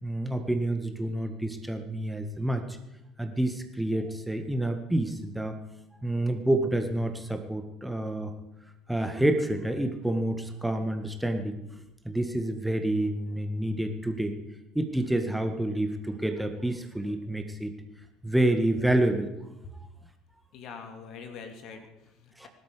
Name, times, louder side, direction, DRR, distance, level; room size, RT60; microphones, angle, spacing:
voice 1, 0.0-2.8 3.2-5.6 6.0-8.3 8.9-11.6 12.0-14.4 14.7-17.7 18.2-19.3 22.4-22.5, right 1 dB, 5° right, 6 dB, 1.6 m, -28 dB
voice 2, 20.5-22.5, left 5 dB, 50° left, 6 dB, 2.3 m, -44 dB
19.5 x 12.0 x 5.0 m, 0.92 s
figure-of-eight pair, 60°, 0 cm